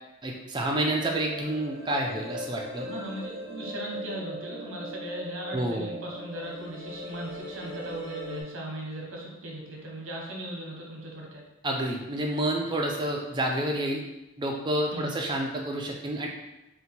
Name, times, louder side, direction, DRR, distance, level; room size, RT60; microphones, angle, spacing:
voice 1, 0.2-2.9 5.5-5.9 11.6-14.0 14.4-16.3, right 1 dB, 20° right, 0 dB, 0.3 m, -29 dB
sound 1, 1.0-8.4, left 1 dB, 5° left, 0.9 m, -39 dB
voice 2, 2.8-11.4 14.9-15.2, right 1 dB, 60° right, -1 dB, 0.8 m, -38 dB
2.8 x 2.2 x 4.1 m, 0.94 s
head